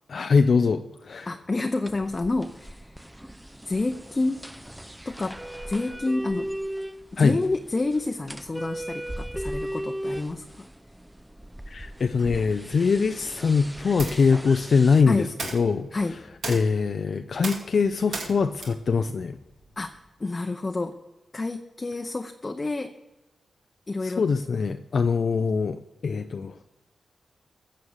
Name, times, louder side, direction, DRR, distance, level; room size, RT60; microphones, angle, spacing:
voice 1, 0.1-1.3 7.2-7.4 11.7-15.9 16.5-19.4 24.0-26.6, left 5 dB, 60° left, 8 dB, 0.5 m, -23 dB
voice 2, 1.3-3.1 3.6-4.4 5.0-5.4 5.7-6.5 7.1-10.7 15.1-15.3 15.9-16.2 19.8-21.0 21.3-22.9 23.9-24.2, left 2 dB, 35° left, 6 dB, 0.8 m, -29 dB
sound 1, 1.9-15.0, equal, 5° right, 0.5 m, -37 dB
sound 2, 14.0-20.1, right 3 dB, 75° right, 2.5 m, -39 dB
14.5 x 6.4 x 7.3 m, 1.0 s
cardioid pair, 60°, 0 cm